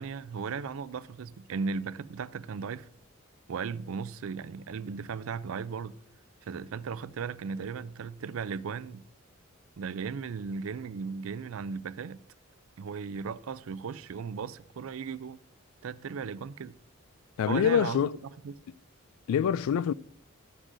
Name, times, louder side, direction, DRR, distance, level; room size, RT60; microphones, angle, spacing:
voice 1, 0.0-2.9 3.5-6.0 6.4-9.0 9.8-12.2 12.8-15.4 15.8-16.8 17.5-18.6, right 5 dB, 75° right, 0.4 m, -36 dB
voice 2, 17.4-18.1 19.3-19.9, left 8 dB, 80° left, 0.3 m, -25 dB
13.0 x 9.8 x 2.6 m
head